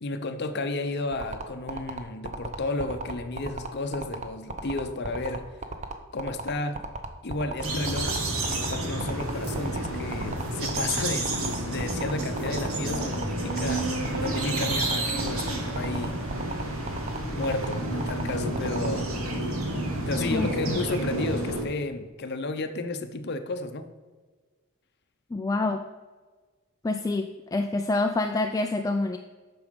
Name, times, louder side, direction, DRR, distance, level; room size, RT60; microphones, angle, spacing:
voice 1, 0.0-5.6 6.1-6.8 7.2-8.2 8.5-11.3 11.7-16.2 17.3-19.1 20.0-23.8, left 2 dB, 50° left, 9 dB, 0.7 m, -32 dB
sound 1, 1.1-18.9, right 3 dB, 30° right, 0.8 m, -35 dB
sound 2, 7.6-21.6, right 1 dB, 70° right, 1.6 m, -30 dB
voice 2, 25.3-25.8 26.8-29.2, left 2 dB, 15° left, 5 dB, 0.3 m, -26 dB
8.3 x 6.2 x 5.1 m, 1.4 s
head